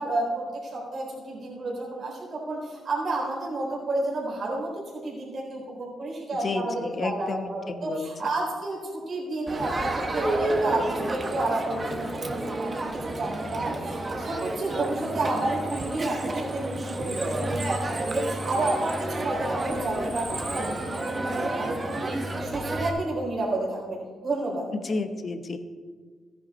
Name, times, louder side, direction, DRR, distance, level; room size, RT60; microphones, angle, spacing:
voice 1, 0.0-24.7, right 2 dB, 50° right, -4 dB, 4.0 m, -31 dB
voice 2, 6.4-8.1 24.7-25.6, left 3 dB, 40° left, 8 dB, 1.1 m, -31 dB
Crowd, 9.5-22.9, right 2 dB, 30° right, 1.3 m, -30 dB
14.5 x 10.0 x 4.3 m, 1.6 s
cardioid pair, 95°, 0 cm